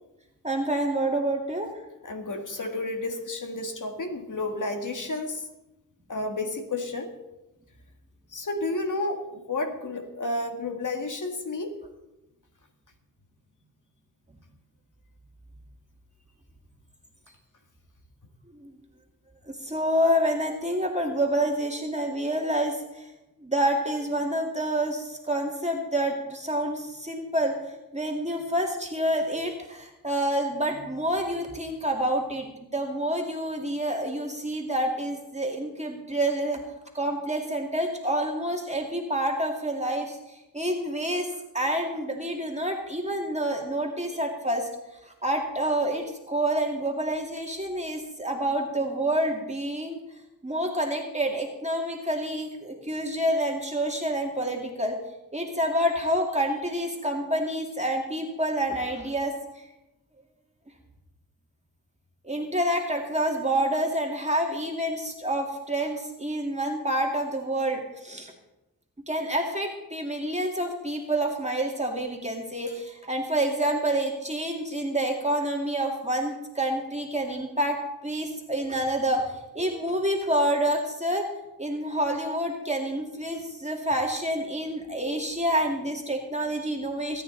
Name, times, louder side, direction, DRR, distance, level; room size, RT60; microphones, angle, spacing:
voice 1, 0.4-1.7 18.5-18.7 19.5-23.1 23.4-27.6 27.9-36.6 36.9-40.2 40.5-41.3 41.5-44.7 45.1-50.0 50.4-55.0 55.3-59.3 62.2-68.3 69.1-81.3 81.6-87.2, right 1 dB, 20° right, 1 dB, 2.3 m, -28 dB
voice 2, 2.0-5.4 6.1-7.1 8.3-11.8, left 2 dB, 55° left, 4 dB, 2.0 m, -31 dB
23.5 x 9.3 x 4.1 m, 0.97 s
cardioid pair, 50°, 37 cm